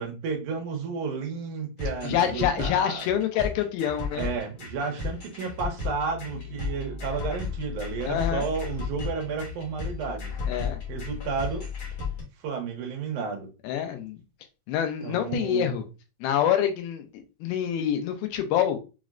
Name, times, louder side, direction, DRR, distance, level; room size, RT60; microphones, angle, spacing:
voice 1, 0.0-3.1 4.1-10.4 10.9-11.6 12.4-13.5 15.0-15.8, right 5 dB, 75° right, 2 dB, 2.0 m, -32 dB
sound 1, 1.8-12.2, left 5 dB, 55° left, 1.4 m, -34 dB
voice 2, 2.0-4.3 8.1-8.5 10.5-10.8 13.6-14.2 14.7-15.9 16.2-18.8, left 9 dB, 90° left, 7 dB, 2.5 m, -26 dB
6.0 x 2.1 x 2.4 m, 0.30 s
omnidirectional pair, 4.2 m